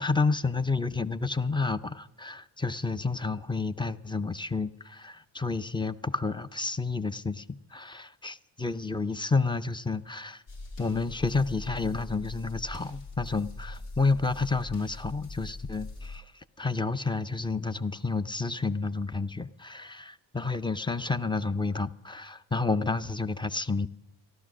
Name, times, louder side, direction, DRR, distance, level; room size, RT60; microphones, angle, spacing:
voice 1, 0.0-10.4 10.8-23.9, left 3 dB, 10° left, 0.5 m, -30 dB
sound 1, 10.5-16.2, left 2 dB, 90° left, 2.3 m, -42 dB
14.0 x 11.5 x 6.2 m
cardioid pair, 75°, 43 cm